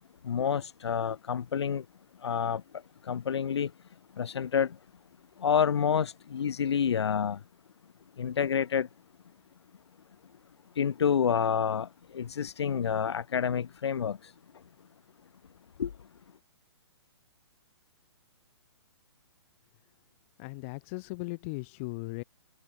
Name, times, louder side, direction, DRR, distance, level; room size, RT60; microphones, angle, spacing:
voice 1, 0.2-1.9 2.2-3.7 4.2-4.8 5.4-7.4 8.2-8.9 10.8-14.3 15.8-15.9, left 7 dB, 70° left, 5.8 m, -28 dB
voice 2, 20.4-22.2, left 27 dB, 30° left, 7.0 m, -37 dB
hypercardioid pair, 160°, 15 cm